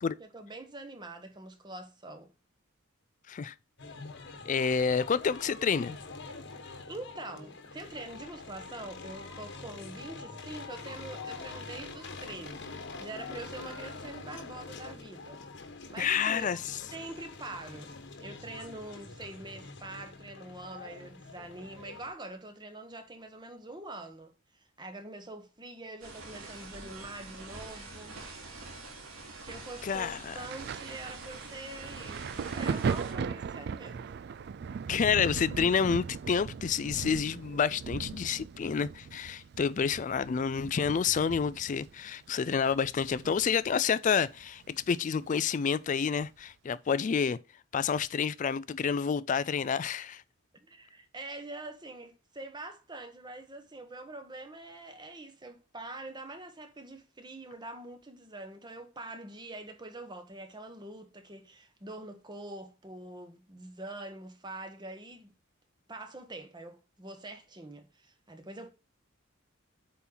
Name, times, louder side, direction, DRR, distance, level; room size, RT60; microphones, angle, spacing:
voice 1, 0.2-2.3 6.9-15.4 15.9-16.5 16.9-17.9 18.2-28.2 29.4-34.0 49.3-49.4 50.5-65.3 65.9-68.7, right 2 dB, 20° right, 1.0 m, -44 dB
sound 1, 3.8-22.1, left 3 dB, 60° left, 1.2 m, -45 dB
voice 2, 4.5-6.0 16.0-16.8 29.8-30.4 34.9-47.4 47.7-50.2, left 6 dB, 40° left, 0.3 m, -29 dB
sound 2, 26.0-33.1, right 3 dB, 80° right, 3.0 m, -45 dB
Thunder, 30.4-43.8 44.0-45.4 46.2-46.4, right 6 dB, 50° right, 0.3 m, -38 dB
8.2 x 4.3 x 3.9 m
head